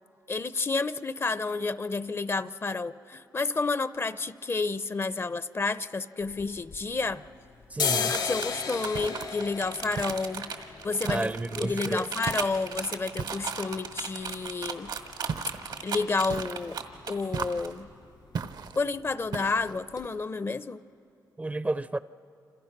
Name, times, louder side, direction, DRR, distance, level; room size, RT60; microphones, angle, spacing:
voice 1, 0.3-7.2 7.9-10.5 10.8-11.3 11.6-14.9 15.8-16.8 17.1-17.9 18.7-20.8, left 4 dB, 35° left, 0.6 m, -30 dB
sound 1, 6.2-7.3 7.6-15.3 15.6-15.7 16.0-16.6 16.9-17.1 17.4-17.6 17.9-18.6 18.9-19.1 19.6-19.7 20.0-20.1, left 6 dB, 80° left, 2.6 m, -35 dB
voice 2, 7.7-8.1 11.1-12.1 21.4-22.0, right 2 dB, 20° right, 0.5 m, -31 dB
sound 2, 8.0-17.7, right 6 dB, 85° right, 1.8 m, -36 dB
sound 3, 8.9-9.4 10.0-10.5 11.1-11.7 12.3-12.7 13.2-13.7 15.3-15.8 16.3-16.8 17.3-17.8 18.3-18.8 19.3-19.8, right 5 dB, 65° right, 0.8 m, -37 dB
28.0 x 27.0 x 5.9 m
cardioid pair, 90°, 8 cm